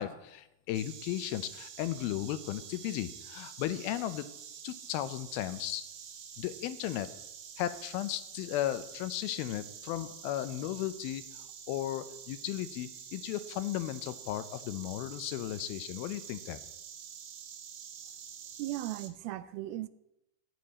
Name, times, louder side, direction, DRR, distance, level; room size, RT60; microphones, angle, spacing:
voice 1, 0.0-4.3 4.6-5.8 6.4-7.1 7.6-16.6, left 13 dB, 80° left, 11 dB, 2.5 m, -35 dB
Insect, 0.7-19.1, right 8 dB, 65° right, 1.8 m, -48 dB
voice 2, 18.6-19.9, right 15 dB, 85° right, 13 dB, 2.5 m, -37 dB
15.5 x 10.5 x 4.2 m, 0.83 s
omnidirectional pair, 4.4 m